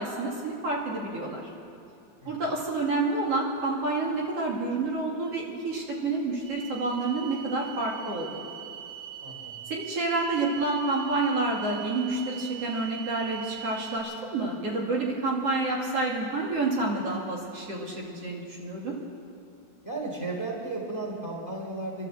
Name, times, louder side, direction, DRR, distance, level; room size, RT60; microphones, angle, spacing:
voice 1, 0.0-1.4 2.3-8.4 9.7-19.0, right 2 dB, 55° right, -2 dB, 3.2 m, -29 dB
sound 1, 6.4-14.0, right 11 dB, 75° right, 8.7 m, -42 dB
voice 2, 9.2-9.7 19.8-22.1, right 2 dB, 15° left, 0 dB, 3.2 m, -34 dB
27.0 x 12.0 x 7.8 m, 2.6 s
omnidirectional pair, 3.4 m